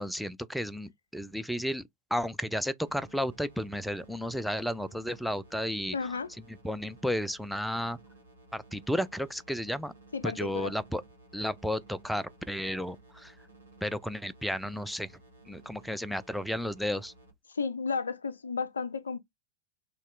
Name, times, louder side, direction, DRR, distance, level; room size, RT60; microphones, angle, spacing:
voice 1, 0.0-1.8 2.1-5.9 6.6-8.0 8.5-9.9 10.2-11.0 11.3-13.3 13.8-15.1 15.5-17.1, equal, ahead, 0.3 m, -33 dB
sound 1, 2.9-17.3, right 2 dB, 80° right, 1.2 m, -56 dB
voice 2, 5.9-6.3 10.1-10.7 17.5-19.2, left 5 dB, 75° left, 0.4 m, -33 dB
2.9 x 2.8 x 3.2 m
figure-of-eight pair, 90°, 0 cm